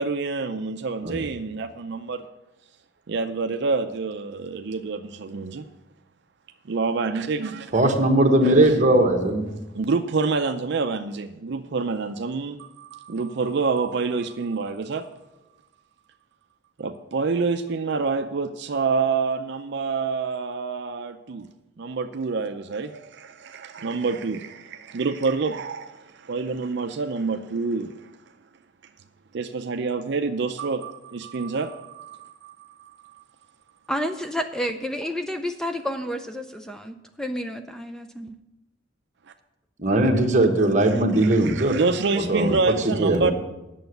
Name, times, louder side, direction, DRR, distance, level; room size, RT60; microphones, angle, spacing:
voice 1, 0.0-2.3 3.1-5.7 6.6-7.7 8.4-8.5 9.7-15.1 16.8-21.5 21.8-28.1 29.3-32.9 40.6-43.3, right 4 dB, 60° right, 7 dB, 0.5 m, -27 dB
voice 2, 7.7-9.4 39.8-41.8 42.1-42.5 42.8-43.3, right 1 dB, 40° right, 2 dB, 1.4 m, -19 dB
voice 3, 33.9-38.4, equal, 5° left, 7 dB, 0.5 m, -30 dB
9.2 x 6.9 x 7.9 m, 1.0 s
head